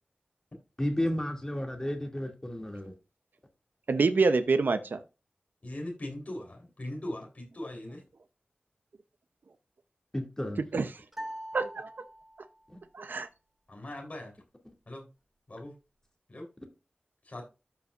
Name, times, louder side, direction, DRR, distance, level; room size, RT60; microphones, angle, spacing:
voice 1, 0.8-2.9 10.1-10.6 12.7-12.8, left 1 dB, 20° left, 2.5 m, -32 dB
voice 2, 3.9-5.0 10.7-10.9 11.5-11.9 12.9-13.3, right 4 dB, 85° right, 0.8 m, -26 dB
voice 3, 5.6-8.0 13.7-14.3 14.9-15.1 15.5-15.7 16.3-16.5 17.3-17.4, left 1 dB, 45° left, 3.8 m, -40 dB
sound 1, 11.1-12.6, right 1 dB, 10° right, 2.3 m, -42 dB
13.5 x 5.7 x 2.5 m
wide cardioid pair, 75°, 3 cm